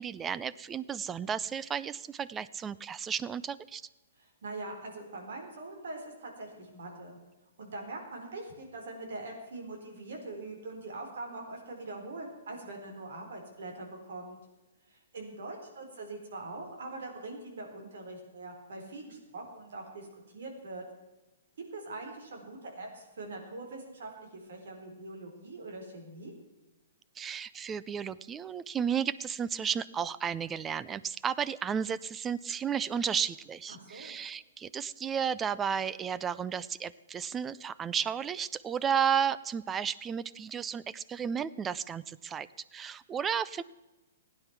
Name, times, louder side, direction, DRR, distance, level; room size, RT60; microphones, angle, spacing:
voice 1, 0.0-3.8 27.2-43.6, right 7 dB, 15° right, 18 dB, 0.4 m, -33 dB
voice 2, 4.2-7.2 7.6-14.4 14.9-20.8 21.7-26.3 33.7-34.2, right 2 dB, 70° right, 2 dB, 4.2 m, -43 dB
16.5 x 9.9 x 6.0 m, 1.1 s
hypercardioid pair, 155°, 0 cm